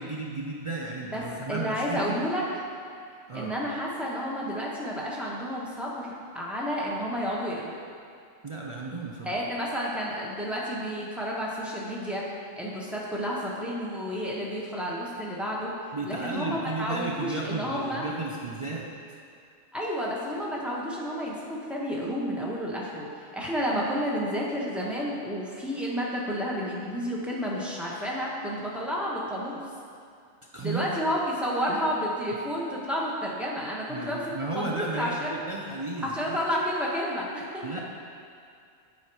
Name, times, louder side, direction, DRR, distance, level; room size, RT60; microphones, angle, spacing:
voice 1, 0.0-2.2 3.3-3.5 8.4-9.3 15.9-18.9 30.5-30.8 31.7-31.8 33.9-36.4 37.6-37.8, right 3 dB, 45° right, -3 dB, 0.4 m, -34 dB
voice 2, 1.5-2.4 3.3-7.7 9.2-12.2 12.6-15.7 16.1-18.1 19.7-29.6 30.6-34.2 34.5-35.4 36.0-37.8, equal, ahead, -5 dB, 0.9 m, -31 dB
8.0 x 4.5 x 4.7 m, 2.3 s
omnidirectional pair, 1.3 m